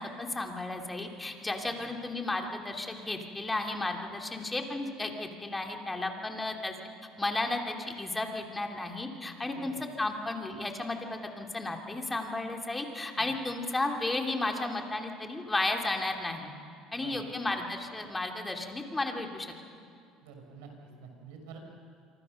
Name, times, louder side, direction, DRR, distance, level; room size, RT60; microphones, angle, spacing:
voice 1, 0.0-6.7 7.2-16.5 16.9-19.5, left 2 dB, 15° left, 3 dB, 3.0 m, -33 dB
voice 2, 9.4-9.8 13.1-13.3 16.9-17.3 20.2-21.6, right 5 dB, 85° right, 3 dB, 5.7 m, -49 dB
27.0 x 24.5 x 6.6 m, 2.4 s
supercardioid pair, 100°, 0 cm